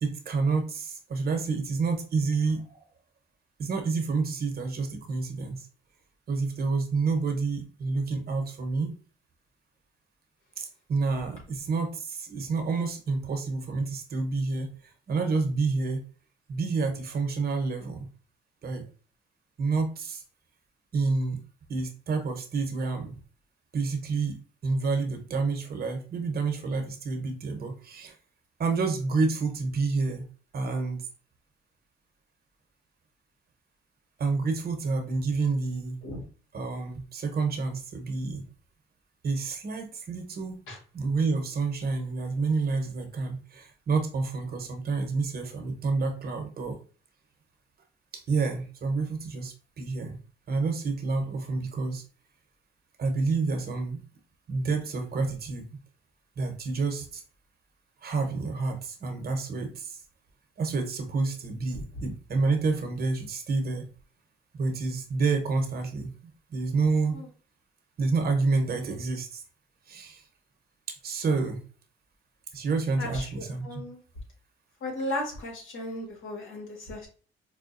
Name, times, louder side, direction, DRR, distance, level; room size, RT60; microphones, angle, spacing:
voice 1, 0.0-2.9 3.6-5.7 6.3-9.0 10.6-16.0 16.5-18.1 18.6-18.9 19.6-20.2 20.9-21.4 21.7-23.1 23.7-28.1 28.6-30.2 30.5-31.1 34.2-36.0 36.5-38.4 39.2-40.6 40.9-46.8 48.1-50.2 50.5-52.0 53.0-54.0 54.5-55.7 56.4-57.2 58.0-60.0 60.6-63.9 64.5-66.1 66.5-67.2 68.0-69.4 69.9-70.2 70.9-71.6 72.5-73.8, right 4 dB, 50° right, 5 dB, 0.9 m, -29 dB
voice 2, 73.0-74.0 74.8-77.1, left 1 dB, 80° left, 0 dB, 1.5 m, -36 dB
4.8 x 2.2 x 2.5 m, 0.39 s
cardioid pair, 90°, 20 cm